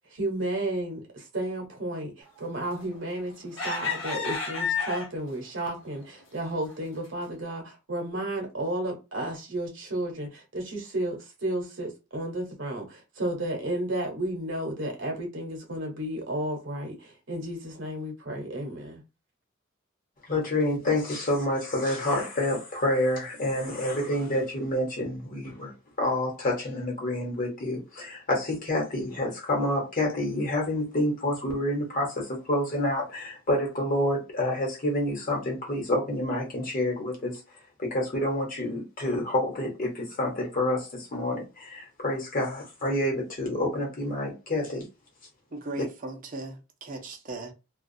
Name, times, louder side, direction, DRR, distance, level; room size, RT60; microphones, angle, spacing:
voice 1, 0.1-19.0, right 1 dB, 60° right, 0.9 m, -32 dB
sound 1, 2.8-3.1 3.6-5.3 5.9-6.1 6.5-6.7, left 5 dB, 65° left, 0.8 m, -30 dB
voice 2, 20.3-37.4 37.8-44.8, left 1 dB, 40° left, 1.1 m, -28 dB
voice 3, 45.5-47.5, right 2 dB, 40° right, 0.5 m, -37 dB
2.3 x 2.2 x 2.6 m
head